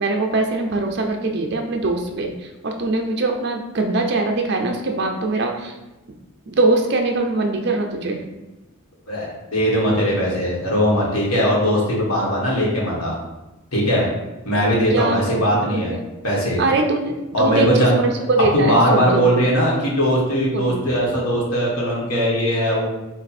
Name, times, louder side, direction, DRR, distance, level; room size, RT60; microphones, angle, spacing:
voice 1, 0.0-2.3 2.6-5.7 6.5-8.2 14.9-15.4 15.7-16.0 16.6-19.3 20.5-20.7, right 2 dB, 50° right, 3 dB, 0.6 m, -22 dB
voice 2, 9.1-13.2 13.7-14.1 14.4-15.9 16.2-16.6 17.3-17.9 18.5-22.9, equal, 85° left, -4 dB, 1.4 m, -19 dB
4.4 x 2.5 x 4.1 m, 1.0 s
head